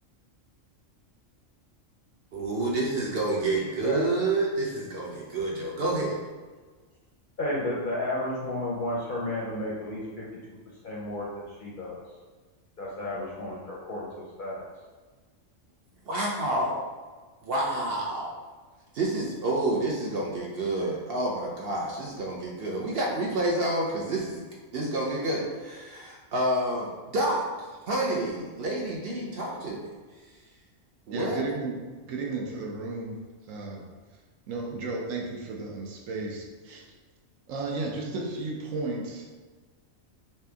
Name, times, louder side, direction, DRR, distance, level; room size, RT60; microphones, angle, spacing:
voice 1, 2.3-6.2 16.1-16.8 17.4-18.3 18.9-24.4 24.7-27.5 27.9-29.9 31.1-31.4, right 2 dB, 60° right, -3 dB, 0.7 m, -29 dB
voice 2, 7.4-10.2 10.8-12.0 12.8-14.6, left 1 dB, 55° left, -4 dB, 0.6 m, -32 dB
voice 3, 31.1-31.8 32.0-33.2 33.4-33.8 34.5-36.8 37.5-39.4, right 3 dB, 75° right, -1 dB, 1.0 m, -34 dB
3.2 x 2.8 x 3.4 m, 1.4 s
omnidirectional pair, 1.4 m